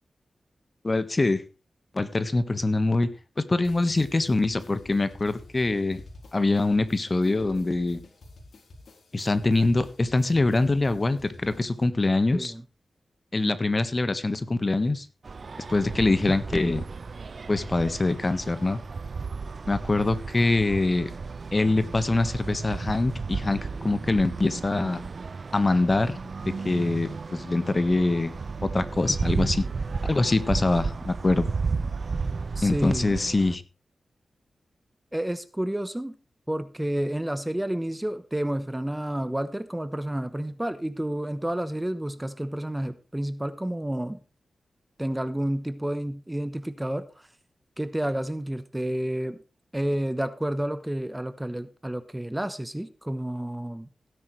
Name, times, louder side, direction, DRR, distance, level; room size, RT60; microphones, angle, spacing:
voice 1, 0.8-1.4 1.9-6.0 6.3-8.0 9.1-12.5 13.3-15.1 15.7-16.8 17.5-18.8 19.7-21.1 21.5-25.0 25.5-28.3 28.6-29.7 30.0-31.5 32.6-33.6, left 2 dB, 35° left, 12 dB, 1.4 m, -24 dB
sound 1, 3.6-11.8, left 2 dB, 80° left, 3.7 m, -49 dB
sound 2, 15.2-33.6, right 4 dB, 55° right, 0.7 m, -33 dB
voice 2, 32.6-33.1 35.1-36.2 36.5-44.2 45.0-47.3 47.8-49.4 49.7-53.9, right 1 dB, 10° right, 13 dB, 1.0 m, -30 dB
17.0 x 10.0 x 3.3 m, 0.32 s
wide cardioid pair, 90°, 0 cm